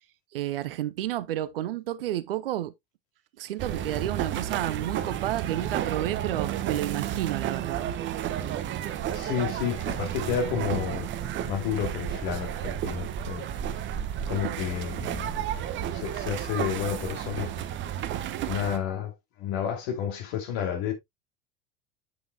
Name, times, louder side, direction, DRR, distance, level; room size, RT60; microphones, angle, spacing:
voice 1, 0.3-2.7 3.4-7.9, right 13 dB, 65° right, 0.7 m, -31 dB
sound 1, 3.6-18.8, right 10 dB, 40° right, 1.1 m, -32 dB
voice 2, 9.1-11.1 11.4-13.5 14.3-15.4 15.9-17.9 18.4-20.9, left 8 dB, 55° left, 2.6 m, -31 dB
8.4 x 7.0 x 2.2 m
figure-of-eight pair, 70°, 31 cm